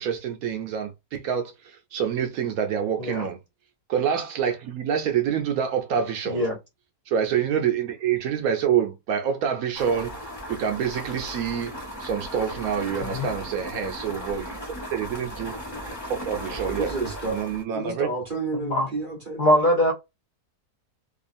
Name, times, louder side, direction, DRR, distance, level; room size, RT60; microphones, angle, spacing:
voice 1, 0.0-3.4 3.9-6.4 7.1-10.1 10.5-11.7 12.0-14.6 14.9-15.5 16.1-17.0 17.3-18.1, right 8 dB, 70° right, 0.9 m, -27 dB
voice 2, 6.3-6.6 13.0-13.3 18.6-18.9 19.4-19.9, equal, 60° left, 0.4 m, -22 dB
sound 1, 9.7-17.6, equal, 15° left, 0.8 m, -36 dB
voice 3, 16.6-17.4 17.7-19.6, right 3 dB, 50° right, 0.6 m, -31 dB
2.9 x 2.4 x 2.5 m
omnidirectional pair, 1.7 m